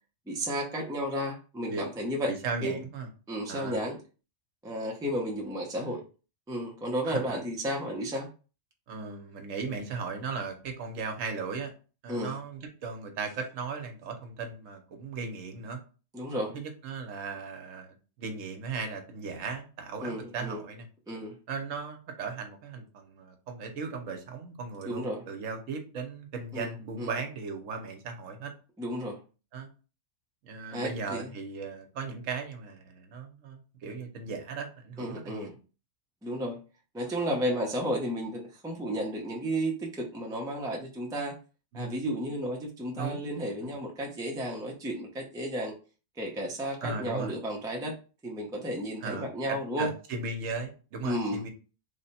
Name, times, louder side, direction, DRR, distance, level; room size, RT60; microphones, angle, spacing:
voice 1, 0.3-2.3 2.6-2.8 3.3-4.0 4.6-6.0 6.5-8.3 12.1-12.4 16.1-16.6 20.0-20.6 21.1-21.4 24.8-25.2 26.5-27.2 28.8-29.2 30.7-31.3 35.0-35.6 36.2-36.6 36.9-41.4 41.7-45.7 46.2-47.9 48.2-49.9 51.0-51.4, equal, 5° right, -1 dB, 0.4 m, -33 dB
voice 2, 2.3-3.1 3.5-3.9 5.8-5.9 7.0-7.4 8.9-11.7 12.0-15.8 16.3-20.9 21.5-28.5 29.5-29.7 30.4-35.5 41.7-42.0 43.0-43.2 43.6-43.7 46.8-47.3 49.0-51.5, right 4 dB, 80° right, 4 dB, 1.1 m, -37 dB
3.4 x 2.1 x 4.1 m, 0.35 s
omnidirectional pair, 1.3 m